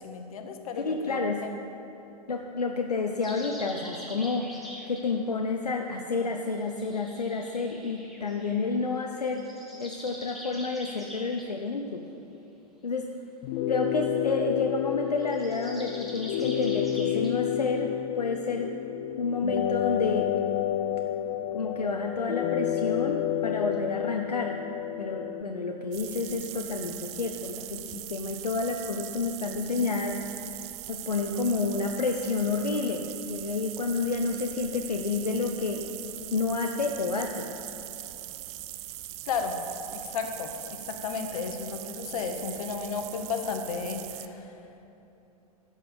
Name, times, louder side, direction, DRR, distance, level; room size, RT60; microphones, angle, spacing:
voice 1, 0.0-1.5 39.3-39.6 39.9-44.5, left 5 dB, 65° left, 5 dB, 1.1 m, -34 dB
voice 2, 0.8-1.4 2.3-4.5 4.9-9.5 9.8-12.0 12.8-13.1 13.7-18.7 19.2-20.3 21.5-24.6 25.0-30.2 30.9-35.8 36.3-37.5, left 3 dB, 85° left, 3 dB, 0.6 m, -30 dB
sound 1, 3.2-5.1 6.7-8.6 9.3-11.5 15.2-17.3, equal, ahead, 1.7 m, -44 dB
sound 2, 13.4-25.4, left 10 dB, 40° left, 0.4 m, -30 dB
sound 3, 25.9-44.3, right 15 dB, 35° right, 0.4 m, -41 dB
11.5 x 5.4 x 6.9 m, 2.9 s
figure-of-eight pair, 95°, 20 cm